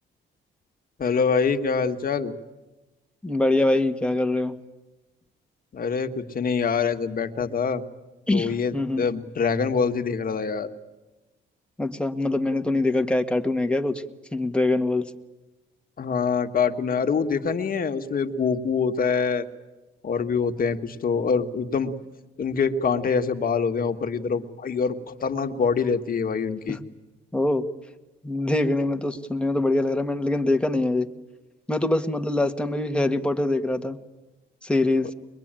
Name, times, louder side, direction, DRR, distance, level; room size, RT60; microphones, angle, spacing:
voice 1, 1.0-2.3 5.7-7.8 8.3-10.7 16.0-19.5 20.0-21.9 22.4-26.8, left 5 dB, 45° left, 6 dB, 1.7 m, -25 dB
voice 2, 3.2-4.6 8.3-9.0 11.8-14.0 14.3-15.1 26.7-26.8 27.3-27.6 28.2-31.1 31.7-34.0 34.6-35.1, left 2 dB, 5° left, 6 dB, 1.7 m, -24 dB
23.0 x 22.5 x 9.0 m, 1.1 s
cardioid pair, 90°, 20 cm